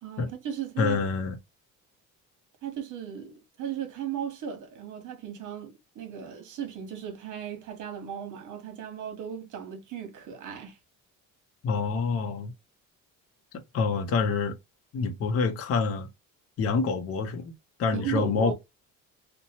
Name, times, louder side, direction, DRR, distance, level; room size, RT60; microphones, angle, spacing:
voice 1, 0.0-1.0 2.6-10.8 17.9-18.5, right 9 dB, 60° right, 1.1 m, -36 dB
voice 2, 0.8-1.4 11.6-12.5 13.7-14.5 14.9-16.1 16.6-17.5 17.8-18.5, left 4 dB, 45° left, 0.6 m, -26 dB
2.8 x 2.2 x 2.8 m
cardioid pair, 140°, 34 cm